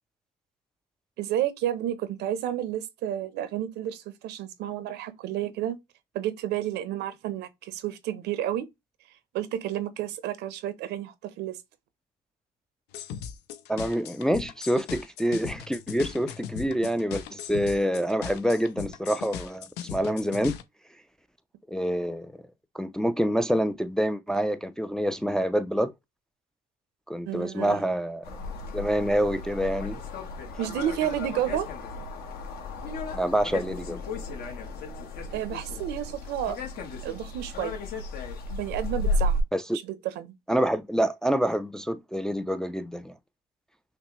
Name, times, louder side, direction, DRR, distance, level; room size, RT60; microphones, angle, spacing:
voice 1, 1.2-5.8 6.1-8.7 9.3-11.6 27.3-27.8 30.6-31.7 35.3-36.6 37.0-37.8 38.5-39.4 39.8-40.3, right 11 dB, 80° right, 0.7 m, -31 dB
sound 1, 12.9-20.6, left 8 dB, 90° left, 0.5 m, -38 dB
voice 2, 13.7-20.6 21.7-22.3 22.7-25.9 27.1-28.2 28.7-30.0 33.1-34.0 39.5-39.6 40.5-43.1, equal, 5° left, 0.3 m, -27 dB
sound 2, 28.2-39.4, left 2 dB, 65° left, 1.2 m, -33 dB
5.8 x 2.1 x 3.0 m
cardioid pair, 110°, 17 cm